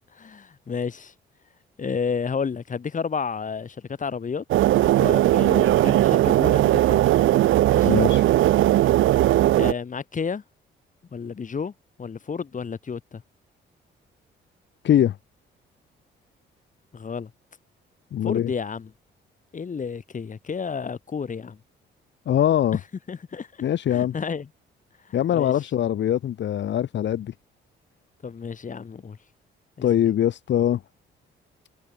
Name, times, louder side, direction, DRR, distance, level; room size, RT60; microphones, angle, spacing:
voice 1, 0.1-1.1 1.8-4.4 4.7-7.2 7.7-8.0 9.5-10.4 11.1-11.7 12.0-13.2 16.9-17.3 18.2-18.9 19.5-21.6 23.1-23.6 23.9-24.5 25.1-25.5 28.2-29.2 29.8-29.9, left 6 dB, 40° left, 7.5 m, -31 dB
sound 1, 4.5-9.7, right 14 dB, 80° right, 1.1 m, -18 dB
voice 2, 7.8-8.3 14.8-15.2 18.1-18.5 22.3-22.8 23.6-24.2 25.1-27.3 29.8-30.8, left 11 dB, 65° left, 2.0 m, -22 dB
cardioid pair, 90°, 20 cm